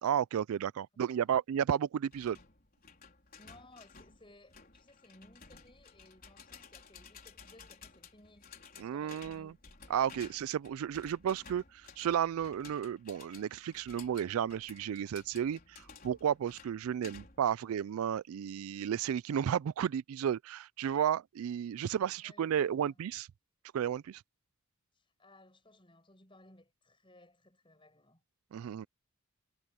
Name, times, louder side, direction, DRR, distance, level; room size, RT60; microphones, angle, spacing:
voice 1, 0.0-2.4 8.8-9.5 9.9-11.6 12.0-23.3 23.7-24.2 28.5-28.9, right 9 dB, 85° right, 0.3 m, -33 dB
sound 1, 2.1-17.5, left 5 dB, 45° left, 4.5 m, -55 dB
voice 2, 3.4-9.6 22.2-23.0 24.9-28.2, left 1 dB, 25° left, 6.1 m, -61 dB
head